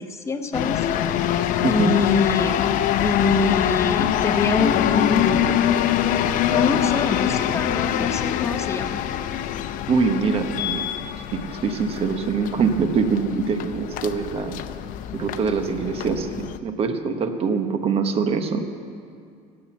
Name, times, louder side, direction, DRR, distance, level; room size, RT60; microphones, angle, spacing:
voice 1, 0.0-1.4 1.7-2.6 3.0-5.5 6.5-9.0, left 4 dB, 15° left, 6 dB, 1.0 m, -25 dB
sound 1, 0.5-16.6, left 10 dB, 55° left, 0.7 m, -24 dB
voice 2, 1.6-1.9 9.9-10.8 11.3-14.6 15.1-18.7, right 5 dB, 35° right, 8 dB, 1.1 m, -24 dB
16.0 x 8.7 x 7.1 m, 2.3 s
cardioid pair, 130°, 17 cm